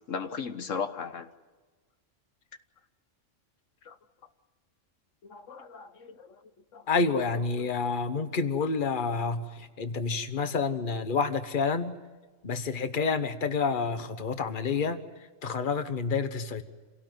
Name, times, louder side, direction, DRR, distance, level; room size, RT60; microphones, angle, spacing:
voice 1, 0.1-1.3 3.8-4.0 5.2-6.3 6.7-6.8 7.1-7.3 7.6-7.7 10.4-10.5, left 6 dB, 85° left, 8 dB, 1.6 m, -37 dB
voice 2, 6.9-11.9 12.4-15.0 15.4-16.6, left 4 dB, 45° left, 9 dB, 1.4 m, -29 dB
27.5 x 17.5 x 9.3 m, 1.3 s
omnidirectional pair, 1.3 m